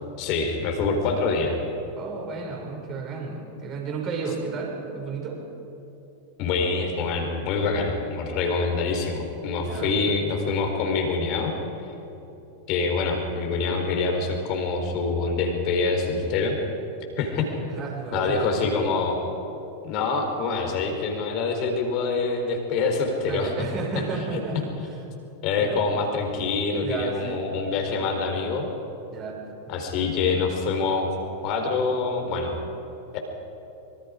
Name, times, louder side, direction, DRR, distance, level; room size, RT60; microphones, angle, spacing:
voice 1, 0.2-1.6 6.4-11.6 12.7-16.6 17.2-17.5 18.1-19.2 19.8-23.5 25.4-28.6 29.7-31.2 31.4-32.5 33.1-33.2, left 4 dB, 40° left, 3 dB, 4.0 m, -25 dB
voice 2, 2.0-5.4 9.6-10.2 17.6-18.7 23.3-25.0 25.6-25.8 26.8-27.4 27.7-28.1 29.1-29.4 29.7-29.8, right 4 dB, 30° right, 0 dB, 6.1 m, -33 dB
26.0 x 24.0 x 5.1 m, 3.0 s
figure-of-eight pair, 90°, 0 cm